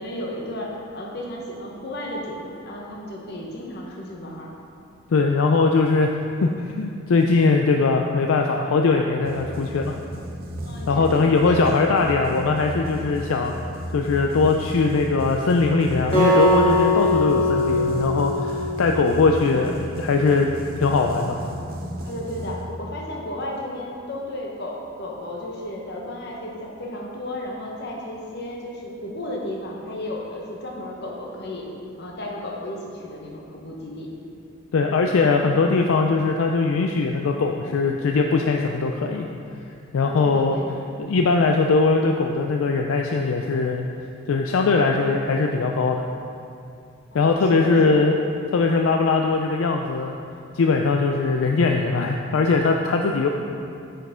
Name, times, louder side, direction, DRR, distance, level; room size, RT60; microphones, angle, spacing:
voice 1, 0.0-4.5 10.6-11.9 22.0-31.7 32.0-34.1 40.0-40.8 47.1-48.1, left 1 dB, 50° left, -2 dB, 1.1 m, -34 dB
voice 2, 5.1-6.1 6.4-10.0 10.9-13.5 13.9-20.5 20.8-21.4 34.7-39.3 39.9-40.6 41.0-43.9 44.3-46.0 47.1-48.2 48.5-50.2 50.5-53.3, left 4 dB, 75° left, 2 dB, 0.4 m, -20 dB
sound 1, 9.2-23.1, right 1 dB, 45° right, 0.7 m, -34 dB
Acoustic guitar, 16.1-19.4, left 1 dB, 25° left, 1.3 m, -21 dB
9.2 x 5.7 x 3.7 m, 2.5 s
head